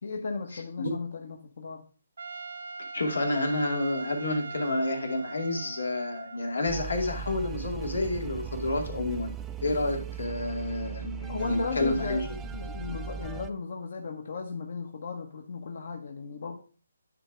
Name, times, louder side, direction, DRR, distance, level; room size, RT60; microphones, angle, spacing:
voice 1, 0.0-1.9 11.3-16.6, left 4 dB, 55° left, 3 dB, 1.0 m, -36 dB
Trumpet, 2.2-6.8, right 4 dB, 75° right, 0.5 m, -41 dB
voice 2, 2.9-9.3 9.6-12.2, left 2 dB, 90° left, 2 dB, 2.2 m, -29 dB
sound 1, 6.7-13.5, right 7 dB, 10° right, 0.3 m, -38 dB
9.6 x 3.3 x 4.9 m, 0.39 s
hypercardioid pair, 165°, 0 cm